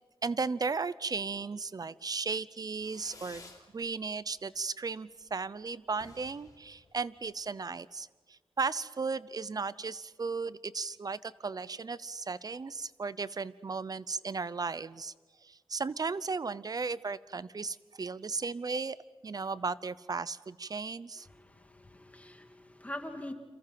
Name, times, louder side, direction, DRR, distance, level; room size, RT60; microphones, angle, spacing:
voice 1, 0.2-15.1 15.4-19.0 19.2-21.3, right 4 dB, 40° right, 17 dB, 0.7 m, -35 dB
Fireworks, 2.7-3.7 4.0-4.6 4.9-5.0 5.2-5.3 5.6-5.7 5.9-7.6, left 3 dB, 40° left, 3.4 m, -54 dB
voice 2, 21.3-23.3, left 1 dB, 15° left, 5 dB, 2.2 m, -43 dB
29.0 x 27.5 x 5.9 m, 1.3 s
wide cardioid pair, 125°, 9 cm